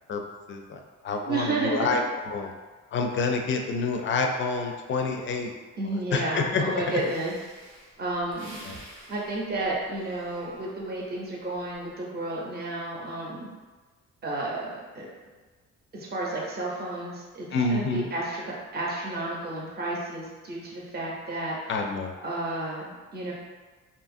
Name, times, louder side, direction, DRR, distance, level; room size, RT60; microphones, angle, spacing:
voice 1, 0.5-2.5 2.9-5.5 6.1-7.0 8.6-8.8 17.5-18.1 21.7-22.1, left 4 dB, 40° left, 3 dB, 0.4 m, -28 dB
voice 2, 1.3-2.0 5.8-7.3 8.0-8.6 9.1-13.5 14.2-14.7 14.9-15.1 15.9-18.4 18.7-21.6 22.2-23.3, right 2 dB, 35° right, -4 dB, 0.7 m, -31 dB
Breathing, 6.8-11.1 11.5-11.9, right 1 dB, 75° right, 1.0 m, -49 dB
2.7 x 2.4 x 2.5 m, 1.3 s
cardioid pair, 90°, 30 cm